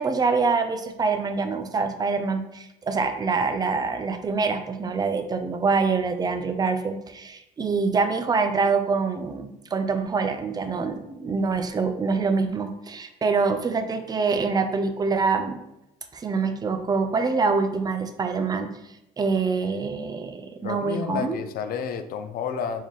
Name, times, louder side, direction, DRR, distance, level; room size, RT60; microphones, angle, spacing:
voice 1, 0.0-15.6 16.1-18.8 19.2-21.4, right 4 dB, 25° right, 7 dB, 0.5 m, -25 dB
voice 2, 20.6-22.8, left 6 dB, 60° left, 9 dB, 0.5 m, -30 dB
4.4 x 3.5 x 3.1 m, 0.87 s
cardioid pair, 110°, 17 cm